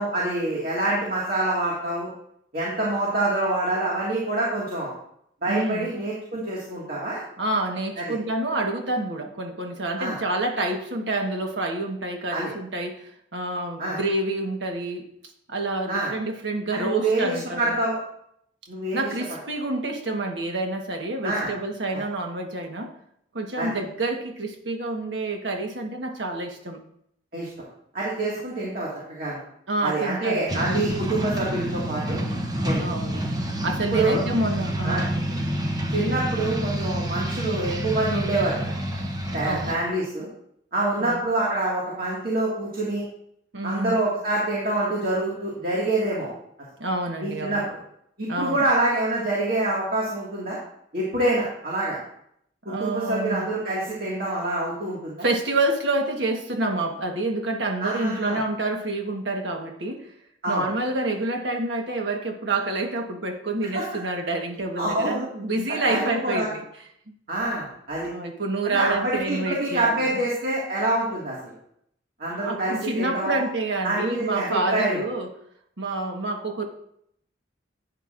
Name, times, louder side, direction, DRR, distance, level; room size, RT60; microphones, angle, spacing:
voice 1, 0.0-2.1 2.5-4.9 5.4-7.2 8.0-8.1 10.0-10.2 12.3-12.5 13.8-14.0 15.9-16.1 16.7-18.0 18.7-19.0 21.2-21.5 23.6-23.8 27.3-27.5 27.9-29.4 29.8-32.2 32.6-33.2 33.9-34.3 34.8-35.1 35.9-38.7 39.3-40.3 40.7-43.0 43.6-46.3 47.2-47.8 48.2-50.6 50.9-52.0 52.7-55.2 57.8-58.4 60.4-60.6 63.7-63.8 64.8-65.2 65.8-66.5 67.3-68.1 68.6-71.5 72.2-73.4 73.8-75.0, right 2 dB, 50° right, -6 dB, 2.1 m, -26 dB
voice 2, 5.5-5.9 7.4-15.1 15.5-17.8 18.9-22.9 23.3-26.8 29.7-30.7 32.8-33.3 33.6-35.4 37.7-37.9 39.4-39.7 41.0-41.2 43.5-44.0 46.8-47.7 48.3-48.6 52.7-53.5 55.2-60.1 60.5-66.6 68.0-70.2 72.3-75.3 75.8-76.6, right 2 dB, 80° right, 3 dB, 1.4 m, -28 dB
sound 1, 30.5-39.7, right 1 dB, 20° right, 0.9 m, -28 dB
11.5 x 9.0 x 2.6 m, 0.72 s
head